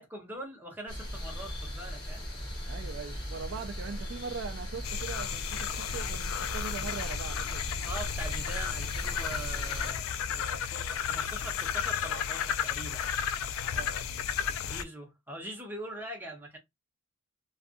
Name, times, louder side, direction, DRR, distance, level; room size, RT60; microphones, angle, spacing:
voice 1, 0.0-2.2 7.9-13.1 14.6-16.6, right 1 dB, 10° right, 0.8 m, -43 dB
sound 1, 0.9-9.9, equal, 20° left, 1.3 m, -38 dB
voice 2, 2.7-7.7 13.7-14.0, right 5 dB, 60° right, 0.3 m, -41 dB
sound 2, 4.8-14.8, left 8 dB, 75° left, 0.3 m, -33 dB
2.5 x 2.4 x 2.5 m
head